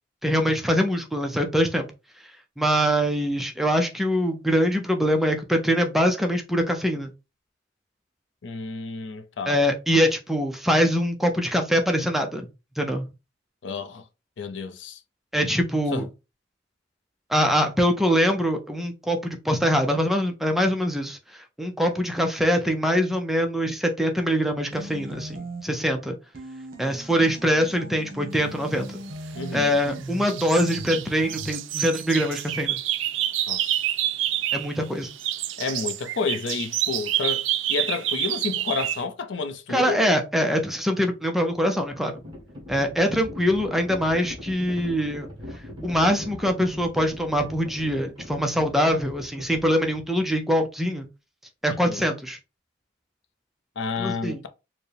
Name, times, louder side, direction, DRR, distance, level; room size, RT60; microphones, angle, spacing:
voice 1, 0.2-1.9 2.6-7.1 9.5-12.5 12.8-13.1 15.3-16.1 17.3-26.2 26.8-28.9 29.5-32.8 34.5-35.1 39.7-42.1 42.7-45.3 45.8-51.1 51.6-52.4 54.0-54.4, equal, ahead, 0.4 m, -23 dB
voice 2, 8.4-9.6 13.6-14.0 14.4-15.0 15.9-16.0 29.4-29.8 33.5-33.9 35.6-40.0 51.7-52.1 53.8-54.5, left 4 dB, 65° left, 0.5 m, -30 dB
sound 1, 24.7-25.9 26.3-31.5, right 1 dB, 50° right, 1.1 m, -39 dB
sound 2, 29.1-29.9 30.2-34.8 35.0-39.0, right 12 dB, 70° right, 0.4 m, -28 dB
Livestock farm animals working animals, 41.5-50.4, left 1 dB, 25° right, 1.5 m, -40 dB
4.5 x 2.0 x 3.2 m
head